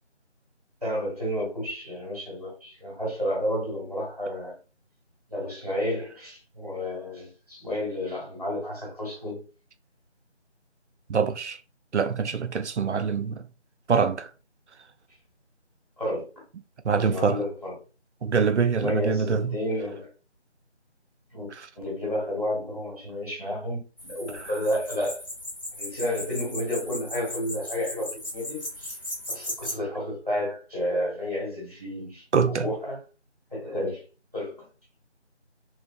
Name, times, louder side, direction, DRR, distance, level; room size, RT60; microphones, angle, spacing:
voice 1, 0.8-4.5 5.3-9.4 16.0-16.3 17.0-17.8 18.7-20.1 21.3-25.2 25.8-28.9 29.3-33.0 33.5-34.0 34.3-34.7, left 1 dB, 35° right, 1.2 m, -31 dB
voice 2, 11.1-11.6 11.9-13.4 13.9-14.3 16.8-17.4 18.2-19.6 24.3-24.5 32.3-32.7, right 6 dB, 80° right, 0.5 m, -24 dB
sound 1, 24.0-29.7, left 1 dB, 50° left, 1.0 m, -37 dB
3.1 x 2.5 x 2.3 m
figure-of-eight pair, 175°, 34 cm